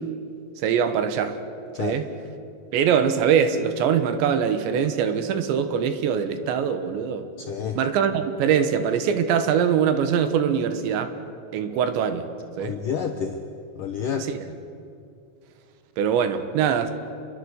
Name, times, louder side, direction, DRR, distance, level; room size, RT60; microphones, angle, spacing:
voice 1, 0.6-1.4 1.8-2.1 2.7-7.3 7.8-11.1 11.5-12.3 12.6-12.8 14.1-14.4 16.0-16.9, right 7 dB, 70° right, 9 dB, 3.4 m, -23 dB
voice 2, 7.4-7.8 12.6-13.4 13.8-14.3, left 7 dB, 85° left, 5 dB, 1.8 m, -29 dB
27.5 x 22.5 x 8.2 m, 2.6 s
omnidirectional pair, 5.6 m